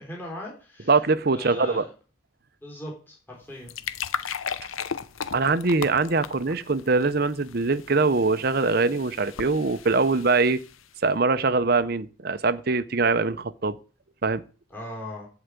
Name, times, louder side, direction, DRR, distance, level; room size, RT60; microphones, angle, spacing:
voice 1, 0.0-1.0 1.3-1.9 2.6-3.7 14.7-15.3, left 1 dB, 10° left, 3.6 m, -38 dB
voice 2, 0.9-1.8 5.3-10.6 11.0-13.8 14.2-14.4, right 3 dB, 50° right, 0.7 m, -23 dB
sound 1, 3.4-11.0, left 7 dB, 90° left, 0.7 m, -37 dB
11.5 x 4.9 x 8.3 m
head